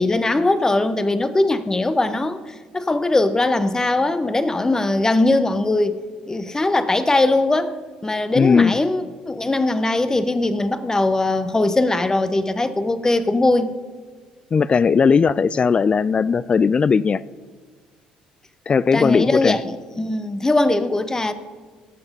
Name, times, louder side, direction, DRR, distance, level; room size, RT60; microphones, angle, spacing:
voice 1, 0.0-2.4 2.7-6.0 6.3-7.8 8.0-13.7 18.9-21.3, left 2 dB, 20° left, 12 dB, 0.9 m, -20 dB
voice 2, 8.3-8.8 14.5-17.2 18.7-19.6, left 5 dB, 35° left, 19 dB, 0.3 m, -17 dB
17.5 x 6.0 x 5.3 m, 1.5 s
hypercardioid pair, 65°, 3 cm